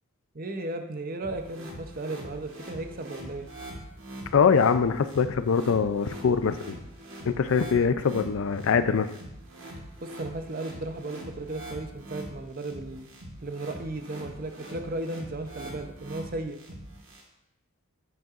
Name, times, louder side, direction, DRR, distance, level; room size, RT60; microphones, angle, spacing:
voice 1, 0.3-3.5 10.0-13.1 13.4-16.6, right 2 dB, 40° right, 6 dB, 0.6 m, -35 dB
sound 1, 1.2-17.2, right 1 dB, 65° right, 1.6 m, -43 dB
voice 2, 4.3-6.8 7.3-9.1, left 6 dB, 65° left, 11 dB, 0.4 m, -23 dB
7.8 x 7.5 x 2.5 m, 0.86 s
head